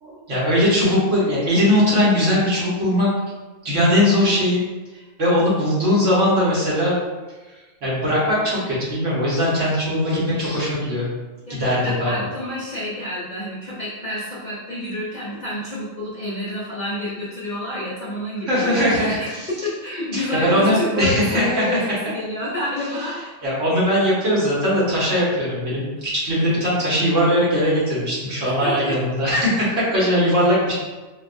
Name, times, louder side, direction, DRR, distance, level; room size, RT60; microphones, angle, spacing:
voice 1, 0.0-3.1 3.6-4.6 5.2-7.0 7.8-11.1 11.5-12.2 18.5-19.5 20.1-21.6 23.4-30.7, equal, 65° right, -7 dB, 1.5 m, -20 dB
voice 2, 11.5-23.2 28.4-29.0, left 1 dB, 45° left, -8 dB, 0.6 m, -29 dB
4.4 x 2.3 x 2.5 m, 1.2 s
omnidirectional pair, 1.4 m